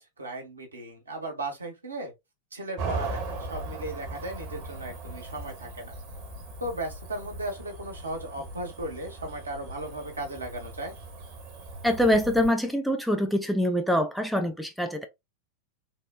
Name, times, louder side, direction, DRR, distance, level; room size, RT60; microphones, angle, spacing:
voice 1, 0.0-2.1 2.5-5.9 6.6-10.9, right 1 dB, 80° right, 1.0 m, -36 dB
Cricket / Motor vehicle (road), 2.8-12.5, right 2 dB, 45° right, 1.0 m, -39 dB
voice 2, 11.8-15.1, equal, ahead, 0.4 m, -24 dB
3.4 x 2.1 x 2.2 m
figure-of-eight pair, 90°, 0 cm